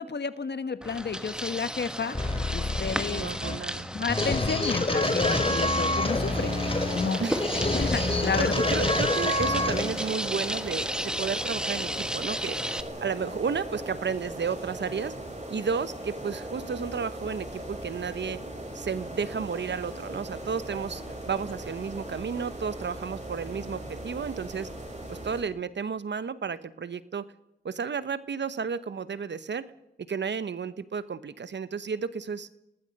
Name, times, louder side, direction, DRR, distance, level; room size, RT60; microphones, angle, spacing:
voice 1, 0.0-3.3 3.9-6.6 6.9-7.2 7.7-8.5, left 5 dB, 60° left, 12 dB, 1.5 m, -31 dB
sound 1, 0.8-12.8, equal, 5° right, 1.6 m, -34 dB
sound 2, 2.1-10.1, left 2 dB, 30° left, 3.3 m, -27 dB
voice 2, 3.1-3.9 7.2-7.5 8.4-12.6 13.0-15.1 15.5-18.4 18.7-21.0 21.3-24.7 25.1-27.2 27.6-29.7 30.1-32.5, right 6 dB, 65° right, 15 dB, 1.0 m, -32 dB
sound 3, 6.0-25.4, right 1 dB, 35° right, 7.9 m, -38 dB
28.5 x 19.0 x 5.4 m, 0.91 s
cardioid pair, 50°, 20 cm